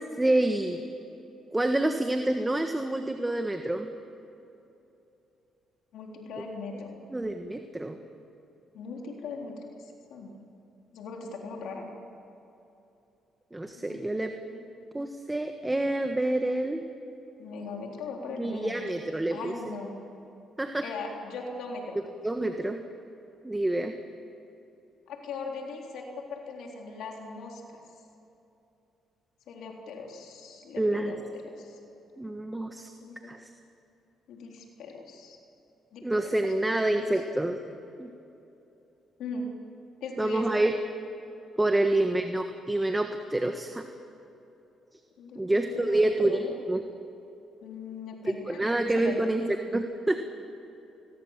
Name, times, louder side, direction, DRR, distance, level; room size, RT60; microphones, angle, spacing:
voice 1, 0.2-0.8 1.5-3.9 7.1-8.0 13.5-14.3 14.9-16.8 18.4-19.5 20.6-20.8 22.2-22.8 23.4-23.9 30.8-31.1 32.2-32.9 33.3-33.5 36.0-37.6 38.0-38.1 40.2-40.7 41.6-43.8 45.3-46.8 48.2-50.2, right 1 dB, 15° right, 5 dB, 1.4 m, -27 dB
voice 2, 5.9-7.0 8.7-10.3 10.9-11.9 13.8-14.1 14.5-14.6 17.4-18.8 19.3-20.0 20.8-22.0 25.1-27.8 29.5-31.8 33.0-33.3 34.3-35.4 35.9-36.3 39.2-39.5 40.0-40.7 41.9-42.1 45.2-46.5 47.6-49.2, left 3 dB, 80° left, 0 dB, 3.7 m, -39 dB
29.0 x 21.0 x 7.5 m, 2.9 s
cardioid pair, 90°, 0 cm